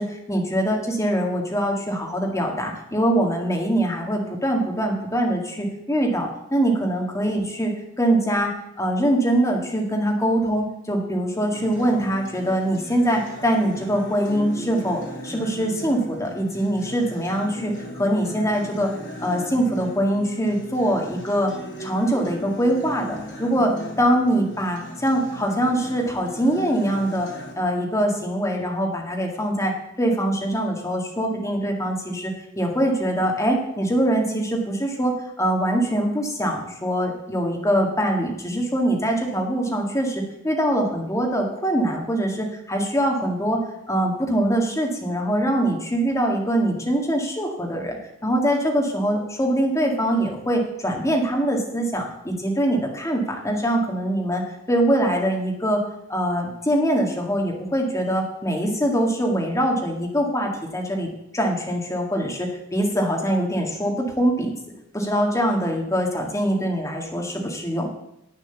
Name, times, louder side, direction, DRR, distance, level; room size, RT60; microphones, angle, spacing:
voice 1, 0.0-7.7 8.0-18.9 19.2-21.5 21.8-27.3 27.6-43.6 43.9-48.0 48.2-54.4 54.7-55.8 56.1-64.5 64.9-67.9, right 1 dB, 15° left, 1 dB, 1.8 m, -23 dB
Acoustic guitar, 11.5-27.5, equal, 60° left, 3.8 m, -37 dB
9.0 x 7.3 x 7.0 m, 0.83 s
head